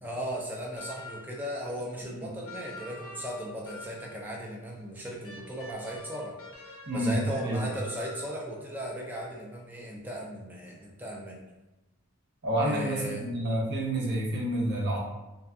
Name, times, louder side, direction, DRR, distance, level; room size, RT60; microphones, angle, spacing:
voice 1, 0.0-6.4 6.9-11.4 12.6-13.2, equal, 10° right, -2 dB, 0.3 m, -37 dB
sound 1, 0.8-1.5 2.4-4.3 5.2-8.4, left 2 dB, 85° left, 0.6 m, -46 dB
voice 2, 6.9-7.6 12.4-15.0, right 1 dB, 50° right, -3 dB, 0.6 m, -29 dB
2.6 x 2.4 x 2.3 m, 1.0 s
head